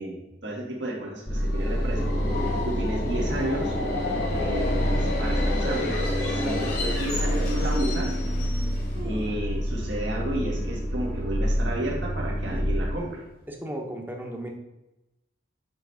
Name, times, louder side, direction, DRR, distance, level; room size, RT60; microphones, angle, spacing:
voice 1, 0.0-2.1 2.6-3.8 4.2-8.2 9.0-13.2, right 1 dB, 70° right, -2 dB, 1.6 m, -32 dB
Subway metro underground, 1.3-9.1, left 2 dB, 60° left, 1.6 m, -31 dB
sound 1, 1.3-13.0, equal, 20° left, 0.8 m, -28 dB
sound 2, 3.6-3.7 4.3-4.4 4.6-5.0 5.6-6.4 7.1-7.5 8.1-8.2 8.7-9.8 10.1-10.2 10.5-10.9 11.3-11.7 12.3-13.1 13.3-13.4, right 1 dB, 50° right, 1.7 m, -39 dB
voice 2, 12.5-12.9 13.5-14.5, right 1 dB, 10° right, 2 dB, 0.9 m, -36 dB
6.3 x 3.2 x 5.6 m, 0.95 s
head